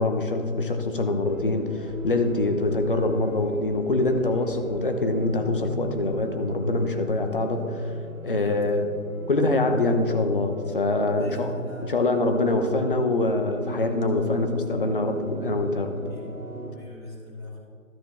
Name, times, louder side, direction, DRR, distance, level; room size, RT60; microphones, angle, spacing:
voice 1, 0.0-7.8 8.2-8.9 9.3-11.5 11.8-15.9, left 2 dB, 40° left, 6 dB, 0.8 m, -24 dB
sound 1, 1.3-16.7, right 2 dB, 75° right, 1.9 m, -39 dB
voice 2, 4.2-4.5 8.2-8.8 11.1-12.2 15.9-16.3 16.7-17.6, left 1 dB, 5° left, -17 dB, 0.9 m, -43 dB
13.0 x 6.8 x 3.5 m, 2.2 s
figure-of-eight pair, 155°, 41 cm